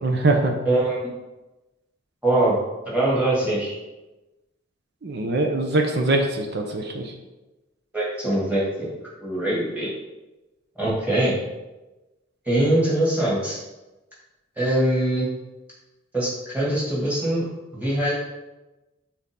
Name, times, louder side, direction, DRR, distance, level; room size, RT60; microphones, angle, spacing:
voice 1, 0.0-0.5 5.0-7.1, right 2 dB, 55° right, 3 dB, 0.7 m, -22 dB
voice 2, 0.6-1.0 2.2-2.6 2.9-3.7 7.9-8.9 9.2-9.9 10.8-11.4 12.5-13.6 14.6-15.3 16.1-17.4 17.7-18.1, right 1 dB, 10° right, -7 dB, 2.1 m, -22 dB
6.1 x 4.2 x 3.7 m, 1.1 s
head